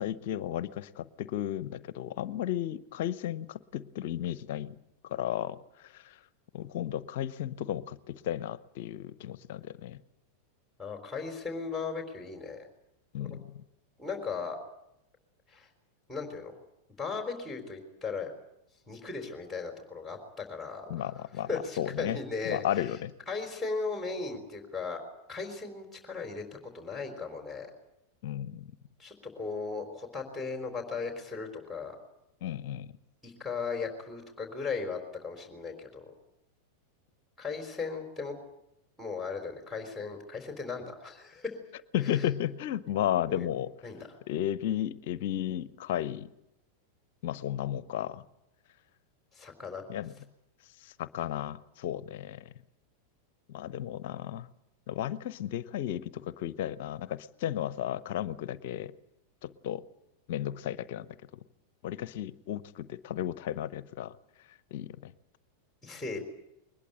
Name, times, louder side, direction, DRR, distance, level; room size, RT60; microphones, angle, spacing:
voice 1, 0.0-4.7 5.0-6.2 6.5-10.0 13.1-13.6 20.9-21.5 21.8-22.2 22.4-23.1 28.2-28.7 32.4-32.9 41.9-43.7 44.3-46.3 47.2-48.2 49.9-50.1 50.8-52.5 53.5-54.5 54.9-58.9 59.4-59.8 60.3-61.4 61.8-64.1 64.7-65.1, left 11 dB, 50° left, 18 dB, 0.8 m, -34 dB
voice 2, 10.8-12.7 13.2-13.3 14.0-14.6 15.5-15.7 16.1-16.5 17.0-18.3 18.9-22.9 23.3-25.0 25.3-27.7 29.0-32.0 33.2-36.1 37.4-38.3 39.0-41.6 42.1-42.2 43.3-43.5 43.8-44.1 49.3-49.8 65.8-66.2, left 4 dB, 5° left, 3 dB, 3.9 m, -37 dB
22.0 x 20.5 x 8.8 m, 0.85 s
figure-of-eight pair, 90°, 0 cm